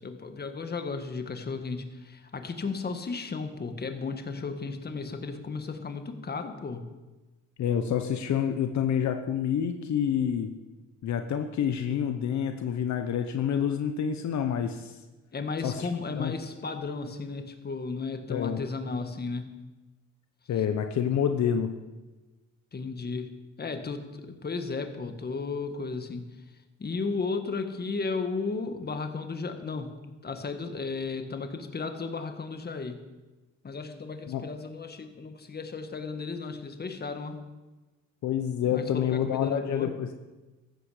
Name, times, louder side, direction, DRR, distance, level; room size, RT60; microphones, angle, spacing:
voice 1, 0.0-6.8 15.3-19.5 22.7-26.3 26.8-30.0 30.2-33.0 33.6-37.4 38.7-39.9, left 4 dB, 30° left, 7 dB, 1.7 m, -34 dB
voice 2, 7.6-10.5 11.0-15.0 15.6-15.9 16.2-16.3 18.3-18.6 20.5-21.7 34.3-34.4 38.2-40.1, left 8 dB, 65° left, 7 dB, 1.0 m, -28 dB
14.5 x 11.5 x 5.1 m, 1.1 s
cardioid pair, 90°, 30 cm